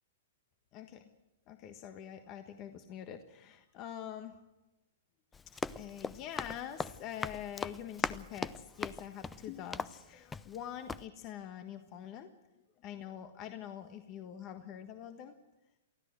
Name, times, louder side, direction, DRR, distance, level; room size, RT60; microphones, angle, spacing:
voice 1, 0.7-1.1 1.5-4.3 5.7-12.3 12.8-15.3, left 10 dB, 40° left, 7 dB, 1.4 m, -45 dB
Run, 5.3-10.6 10.9-11.1, left 4 dB, 15° left, 0.6 m, -40 dB
24.0 x 15.0 x 7.8 m, 1.0 s
hypercardioid pair, 125°, 0 cm